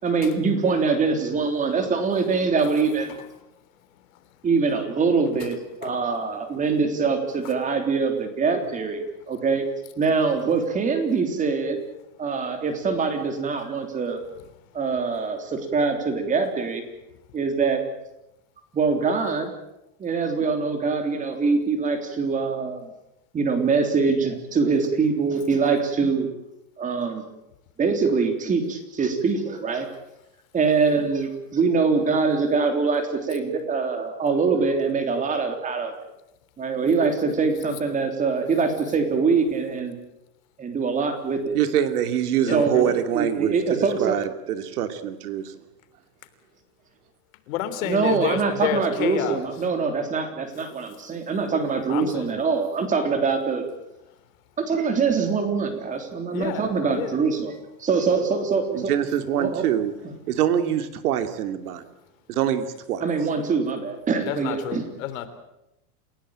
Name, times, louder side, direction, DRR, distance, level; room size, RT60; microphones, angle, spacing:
voice 1, 0.0-3.1 4.4-9.7 10.0-11.8 12.2-14.2 14.7-16.8 17.3-17.8 18.7-19.5 20.0-22.9 23.3-26.3 26.8-27.2 27.8-29.9 30.5-35.9 36.6-39.9 40.6-41.6 42.5-44.2 47.8-53.6 54.6-57.5 57.8-58.9 59.4-59.6 60.0-60.1 63.0-64.8, right 4 dB, 15° right, 6 dB, 3.4 m, -24 dB
voice 2, 41.5-45.5 58.7-59.9 60.3-61.8 62.3-63.0, right 10 dB, 75° right, 9 dB, 2.8 m, -25 dB
voice 3, 42.4-43.0 47.5-49.4 51.6-52.5 56.3-57.2 64.2-65.3, left 11 dB, 60° left, 11 dB, 3.4 m, -30 dB
28.5 x 17.0 x 8.9 m, 0.89 s
supercardioid pair, 160°, 46 cm